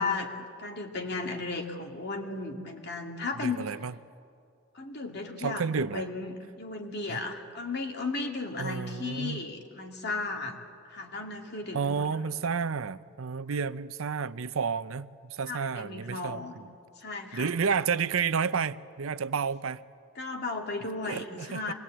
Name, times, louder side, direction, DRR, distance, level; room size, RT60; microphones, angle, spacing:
voice 1, 0.0-3.6 4.7-10.6 10.8-12.1 15.5-16.6 17.0-17.5 20.2-21.7, left 3 dB, 50° left, 2.5 m, -35 dB
voice 2, 3.3-3.9 5.4-6.1 7.1-7.2 8.6-9.5 11.7-16.6 17.3-19.8 21.0-21.7, right 6 dB, 75° right, 0.6 m, -31 dB
26.0 x 21.0 x 8.8 m
head